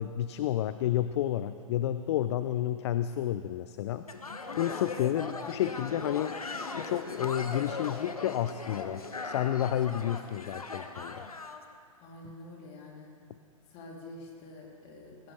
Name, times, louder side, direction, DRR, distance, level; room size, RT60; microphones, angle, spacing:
voice 1, 0.0-4.1 4.6-6.4 6.8-11.2, left 11 dB, 50° left, 12 dB, 0.5 m, -30 dB
sound 1, 4.1-11.6, left 4 dB, 90° left, 1.1 m, -39 dB
voice 2, 12.0-13.1 13.7-15.3, left 2 dB, 35° left, -2 dB, 3.6 m, -47 dB
19.0 x 15.5 x 3.5 m, 2.2 s
figure-of-eight pair, 115°, 18 cm